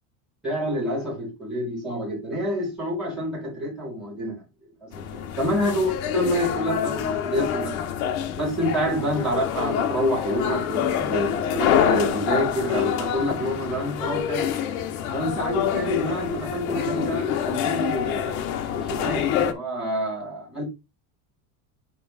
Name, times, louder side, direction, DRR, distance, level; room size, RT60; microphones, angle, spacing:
voice 1, 0.4-4.4 4.8-7.7 8.3-14.5 15.1-18.3 18.7-20.6, equal, ahead, 4.6 m, -27 dB
sound 1, 4.9-19.5, left 9 dB, 75° left, 1.5 m, -26 dB
9.4 x 3.8 x 3.5 m
cardioid pair, 180°, 43 cm